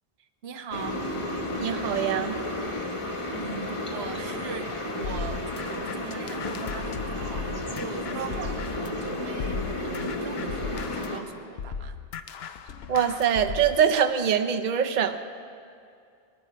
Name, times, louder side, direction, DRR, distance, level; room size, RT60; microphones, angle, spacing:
voice 1, 0.4-1.0 2.9-12.0, right 6 dB, 80° right, 9 dB, 1.0 m, -41 dB
sound 1, 0.7-11.2, left 1 dB, 30° left, 1.2 m, -32 dB
voice 2, 1.6-2.4 8.2-8.5 12.9-15.2, right 8 dB, 50° right, 8 dB, 0.8 m, -24 dB
sound 2, 5.0-9.0 9.4-13.8, left 6 dB, 80° left, 0.9 m, -37 dB
20.5 x 11.5 x 5.1 m, 2.4 s
omnidirectional pair, 1.0 m